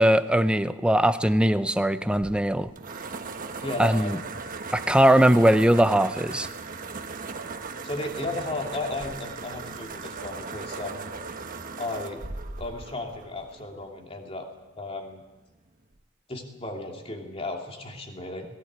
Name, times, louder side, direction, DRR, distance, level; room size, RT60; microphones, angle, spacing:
voice 1, 0.0-2.7 3.8-4.2 4.7-6.5, right 1 dB, 5° right, 11 dB, 0.7 m, -20 dB
sound 1, 2.0-13.9, right 4 dB, 45° right, 1.3 m, -38 dB
voice 2, 3.6-4.1 7.8-11.1 11.8-12.2 12.6-14.5 14.8-15.2 16.3-18.5, left 2 dB, 30° left, 2 dB, 2.9 m, -34 dB
18.0 x 18.0 x 8.9 m, 1.1 s
head